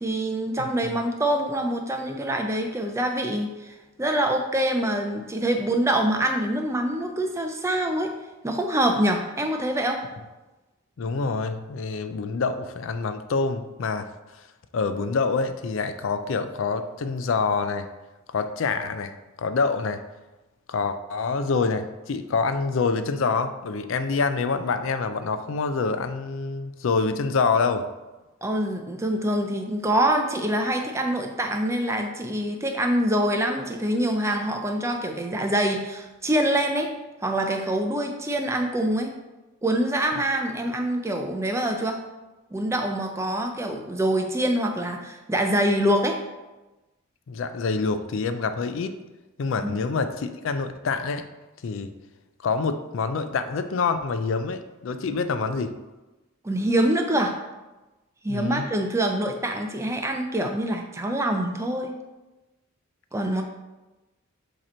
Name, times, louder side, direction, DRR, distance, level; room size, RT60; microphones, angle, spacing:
voice 1, 0.0-8.1 8.4-10.0 28.4-36.9 37.2-39.1 39.6-42.0 42.5-46.2 49.6-49.7 56.4-57.4 58.2-61.9 63.1-63.4, right 1 dB, 15° right, 4 dB, 0.4 m, -25 dB
voice 2, 11.0-14.1 14.7-17.9 18.3-20.0 20.7-27.9 47.3-48.9 49.4-51.3 51.6-51.9 52.4-55.8 58.3-58.7, left 4 dB, 65° left, 10 dB, 0.4 m, -26 dB
7.5 x 2.9 x 4.3 m, 1.1 s
head